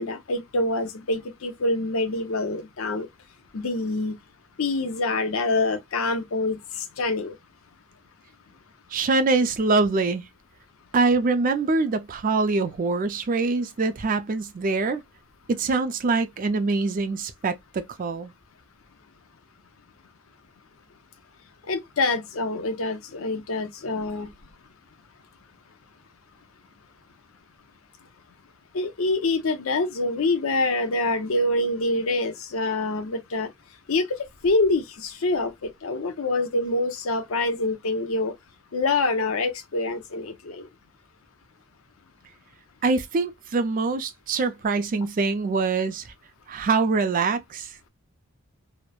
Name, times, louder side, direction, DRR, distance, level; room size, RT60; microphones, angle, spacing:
voice 1, 0.0-3.1 3.5-4.2 4.6-7.4 21.7-24.3 28.7-33.5 33.9-34.1 34.4-38.3 38.7-40.7, left 2 dB, 90° left, 0.6 m, -26 dB
voice 2, 8.9-10.2 10.9-15.0 15.5-18.3 42.8-46.1 46.5-47.7, right 3 dB, 40° right, 0.4 m, -24 dB
3.0 x 2.0 x 2.2 m
head